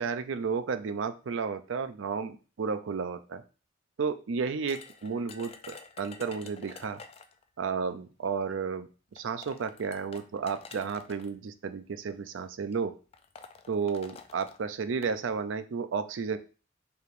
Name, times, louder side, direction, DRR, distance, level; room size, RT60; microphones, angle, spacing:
voice 1, 0.0-3.4 4.0-7.0 7.6-8.9 9.2-13.0 13.7-16.4, right 5 dB, 80° right, 10 dB, 0.4 m, -32 dB
sound 1, 4.7-7.4 8.5-8.6 9.2-11.3 12.2-12.4 12.7-12.8 13.1-15.2, left 5 dB, 30° left, 0.3 m, -49 dB
4.6 x 3.4 x 2.5 m, 0.35 s
head